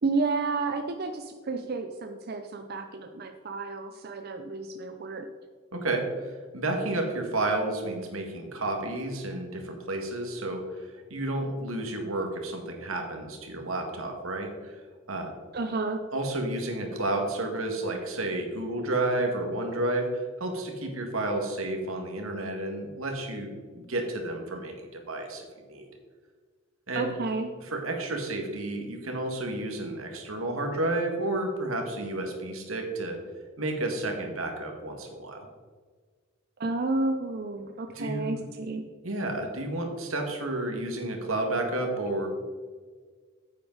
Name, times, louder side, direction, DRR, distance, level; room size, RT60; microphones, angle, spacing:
voice 1, 0.0-5.3 15.5-16.0 26.9-27.5 36.6-38.8, right 3 dB, 50° right, 6 dB, 0.6 m, -31 dB
voice 2, 5.7-14.8 15.1-15.3 16.1-25.9 26.9-27.1 27.7-33.2 33.6-35.5 38.0-38.5 39.0-42.3, right 2 dB, 90° right, 3 dB, 1.9 m, -31 dB
9.6 x 8.4 x 4.0 m, 1.5 s
head